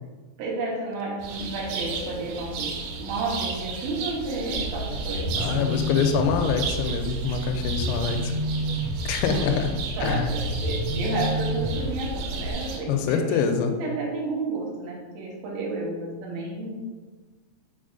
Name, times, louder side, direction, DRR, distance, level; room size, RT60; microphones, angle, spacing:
voice 1, 0.4-5.9 9.2-13.5 13.8-16.9, right 2 dB, 70° right, -4 dB, 2.2 m, -32 dB
sound 1, 1.2-12.8, right 4 dB, 85° right, 3.3 m, -34 dB
sound 2, 4.5-12.5, equal, 55° left, 2.2 m, -30 dB
voice 2, 5.4-8.3 9.0-9.7 10.0-10.3 12.9-13.7, left 6 dB, 90° left, 5 dB, 3.2 m, -25 dB
6.4 x 5.9 x 2.5 m, 1.3 s
omnidirectional pair, 5.8 m